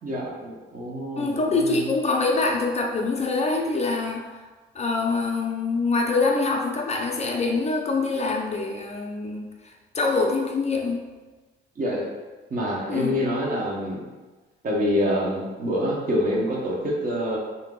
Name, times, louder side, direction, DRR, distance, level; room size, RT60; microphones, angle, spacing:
voice 1, 0.0-1.8 11.8-12.1 12.5-14.0 14.6-17.4, equal, 45° right, -3 dB, 1.0 m, -26 dB
voice 2, 1.2-4.4 4.7-9.4 9.9-11.0 12.9-13.2, left 3 dB, 35° left, 0 dB, 0.5 m, -24 dB
2.8 x 2.7 x 3.7 m, 1.2 s
cardioid pair, 90°, 20 cm